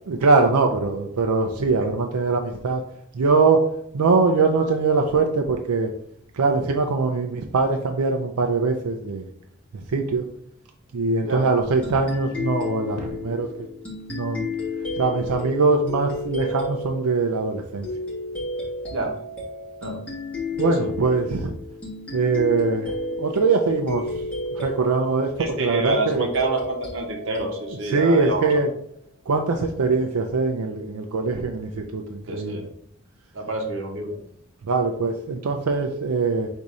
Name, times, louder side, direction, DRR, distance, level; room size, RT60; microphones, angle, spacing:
voice 1, 0.1-2.8 3.1-3.6 3.9-5.9 6.3-9.3 9.9-10.2 10.9-13.5 14.1-14.5 15.0-17.9 20.6-21.5 22.1-24.2 24.5-26.3 27.8-28.7 29.3-32.7 34.7-36.5, right 4 dB, 90° right, 4 dB, 0.5 m, -22 dB
sound 1, 11.8-29.0, left 2 dB, 5° left, 1.3 m, -32 dB
voice 2, 25.4-28.6 32.3-32.6 33.3-34.2, right 2 dB, 60° right, 2 dB, 1.0 m, -28 dB
4.0 x 2.7 x 4.8 m, 0.68 s
head